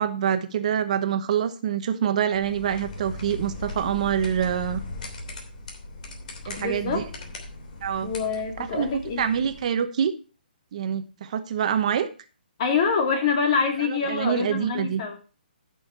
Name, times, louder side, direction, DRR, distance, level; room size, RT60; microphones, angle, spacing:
voice 1, 0.0-4.8 6.5-7.0 7.8-8.1 8.7-10.1 10.7-12.1 13.8-15.0, right 8 dB, 45° right, 10 dB, 1.0 m, -26 dB
sound 1, 2.3-9.6, left 2 dB, 50° left, 2.9 m, -38 dB
voice 2, 6.6-7.0 8.0-9.2 12.6-15.2, left 5 dB, 35° left, 3 dB, 2.6 m, -25 dB
13.0 x 6.4 x 4.5 m, 0.35 s
hypercardioid pair, 160°, 5 cm